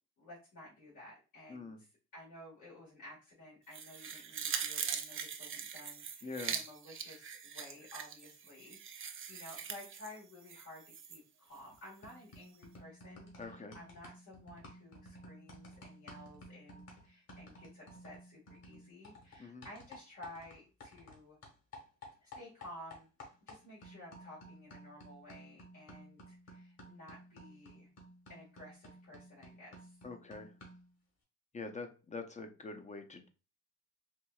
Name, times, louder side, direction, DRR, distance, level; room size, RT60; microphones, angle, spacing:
voice 1, 0.2-21.4 22.2-23.1 23.5-27.9 28.3-30.0, left 1 dB, 80° left, -6 dB, 1.9 m, -54 dB
voice 2, 1.5-1.8 6.2-6.6 13.4-13.8 19.4-19.7 30.0-30.5 31.5-33.3, left 3 dB, 25° left, 7 dB, 0.7 m, -45 dB
sound 1, 3.7-11.2 11.6-11.7, right 7 dB, 45° right, 0.5 m, -42 dB
sound 2, 11.5-11.8 12.0-21.2 21.4-30.9, equal, 55° left, 1.6 m, -54 dB
4.5 x 2.6 x 2.3 m, 0.32 s
cardioid pair, 90°, 30 cm